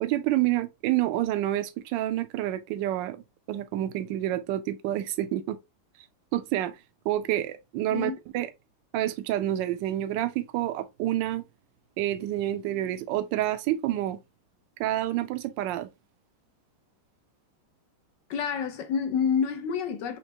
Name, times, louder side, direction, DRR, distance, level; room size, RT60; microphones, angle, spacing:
voice 1, 0.0-5.6 6.3-6.8 7.0-8.5 8.9-11.4 12.0-14.2 14.8-15.9, right 13 dB, 75° right, 1.1 m, -28 dB
voice 2, 18.3-20.2, left 7 dB, 75° left, 1.1 m, -28 dB
4.5 x 2.9 x 2.8 m
omnidirectional pair, 2.3 m